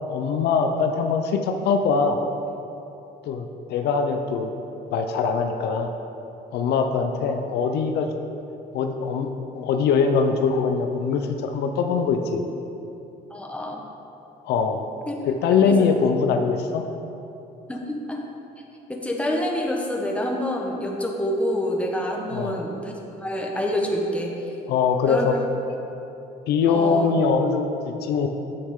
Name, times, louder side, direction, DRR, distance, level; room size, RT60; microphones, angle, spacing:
voice 1, 0.0-2.2 3.2-4.5 4.9-5.9 6.5-8.1 8.7-12.4 14.4-14.9 15.3-16.8 22.3-22.6 24.7-25.4 26.5-28.3, left 5 dB, 75° left, 5 dB, 0.6 m, -22 dB
voice 2, 13.3-13.8 15.1-15.2 15.7-15.9 17.7-18.2 18.9-24.3 25.1-25.3 26.7-27.1, left 1 dB, 5° left, 0 dB, 1.1 m, -27 dB
9.6 x 6.9 x 3.7 m, 2.9 s
cardioid pair, 110°, 17 cm